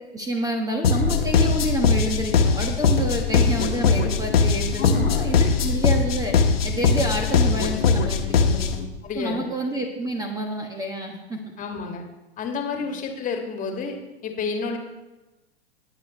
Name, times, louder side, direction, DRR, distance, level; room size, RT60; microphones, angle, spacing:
voice 1, 0.1-6.3 6.6-8.8 9.1-11.4 12.8-12.9, right 1 dB, 10° right, 2 dB, 1.3 m, -28 dB
sound 1, 0.8-8.9, left 5 dB, 65° left, 1.4 m, -21 dB
voice 2, 4.8-5.2 9.0-9.5 11.6-12.1 12.4-14.0 14.2-14.8, left 4 dB, 25° left, 3 dB, 1.9 m, -30 dB
19.5 x 8.1 x 3.1 m, 1.1 s
figure-of-eight pair, 100°, 32 cm